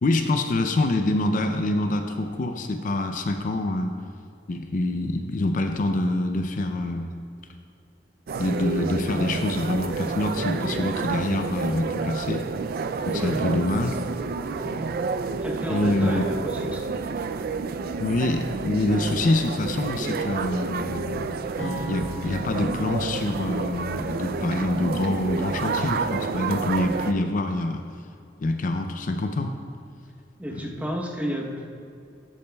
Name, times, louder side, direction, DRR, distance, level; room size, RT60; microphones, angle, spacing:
voice 1, 0.0-3.9 4.5-7.1 8.4-12.5 13.0-13.9 15.7-16.3 18.0-27.8 28.4-29.5, left 2 dB, 45° left, 6 dB, 0.4 m, -26 dB
sound 1, 8.3-27.1, right 4 dB, 55° right, 0.3 m, -29 dB
voice 2, 13.1-14.0 14.5-14.7 15.4-17.0 30.4-31.7, equal, 10° right, -1 dB, 0.9 m, -32 dB
sound 2, 21.6-25.7, right 1 dB, 70° left, 1.7 m, -40 dB
13.5 x 8.3 x 2.3 m, 2.5 s
head